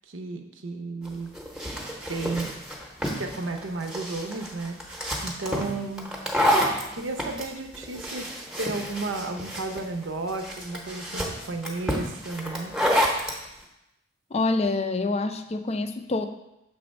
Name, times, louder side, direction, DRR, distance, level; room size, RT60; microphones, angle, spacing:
voice 1, 0.1-1.3 2.1-2.6 3.2-6.1 6.9-12.7, right 3 dB, 70° right, 5 dB, 0.7 m, -33 dB
sound 1, 1.0-13.4, equal, 5° right, 0.8 m, -29 dB
voice 2, 14.3-16.3, left 3 dB, 30° left, 9 dB, 0.4 m, -26 dB
6.9 x 3.4 x 5.2 m, 0.88 s
head